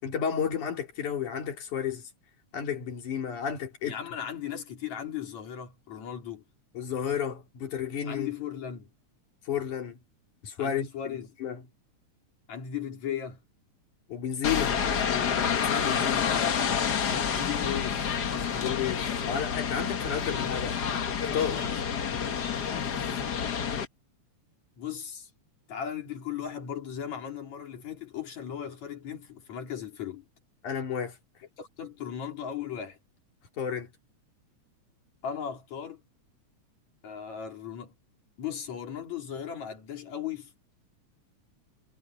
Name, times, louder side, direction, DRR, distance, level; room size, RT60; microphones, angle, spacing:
voice 1, 0.0-2.1 2.5-4.0 6.7-8.3 9.5-10.0 10.4-11.6 14.1-16.4 18.6-20.8 21.2-21.7 30.6-31.2 33.6-33.9, left 8 dB, 85° left, 4.7 m, -32 dB
voice 2, 3.8-6.4 8.1-8.9 10.6-11.3 12.5-13.4 16.3-18.8 22.5-22.9 24.8-25.3 25.7-30.3 31.6-33.0 35.2-36.0 37.0-37.9 38.4-40.5, left 9 dB, 70° left, 4.4 m, -37 dB
sound 1, 14.4-23.8, left 7 dB, 50° left, 1.3 m, -29 dB
omnidirectional pair, 3.4 m